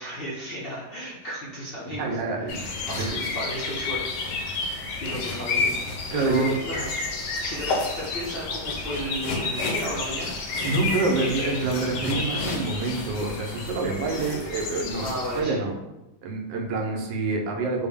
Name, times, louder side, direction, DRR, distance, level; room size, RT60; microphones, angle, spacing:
voice 1, 0.0-2.1 2.4-2.5 2.9-4.0 4.3-4.6 5.0-5.7 6.1-6.8 7.4-10.4 15.0-15.6, equal, 60° left, -7 dB, 0.5 m, -34 dB
voice 2, 2.0-3.2 6.1-6.9 10.6-15.1 15.3-15.7 16.2-17.9, right 3 dB, 85° right, 1 dB, 1.3 m, -27 dB
sound 1, 2.5-15.4, left 3 dB, 80° left, 1.2 m, -30 dB
4.1 x 2.1 x 3.5 m, 0.96 s
omnidirectional pair, 1.9 m